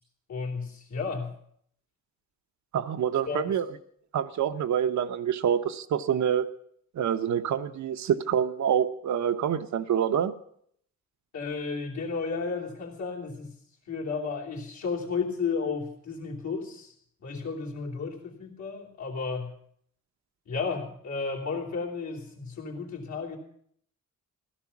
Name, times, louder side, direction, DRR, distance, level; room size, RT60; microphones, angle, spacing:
voice 1, 0.3-1.3 3.3-3.4 11.3-13.5 13.9-16.9 17.2-19.5 20.5-23.4, left 4 dB, 65° left, -1 dB, 3.4 m, -33 dB
voice 2, 2.7-3.6 4.1-6.5 6.9-10.3, right 9 dB, 65° right, 9 dB, 0.9 m, -26 dB
16.0 x 13.0 x 5.9 m, 0.67 s
wide cardioid pair, 140°, 30 cm